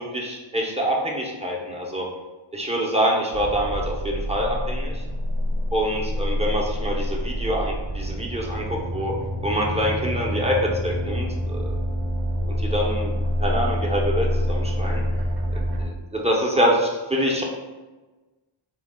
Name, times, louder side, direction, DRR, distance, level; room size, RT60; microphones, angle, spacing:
voice 1, 0.0-2.1 2.5-5.0 5.7-9.1 9.4-11.7 12.5-13.1 13.4-15.0 15.5-17.4, equal, 15° right, -2 dB, 0.7 m, -25 dB
sound 1, 3.3-15.9, equal, 50° right, 0.7 m, -27 dB
4.4 x 2.3 x 3.6 m, 1.2 s
wide cardioid pair, 100°, 49 cm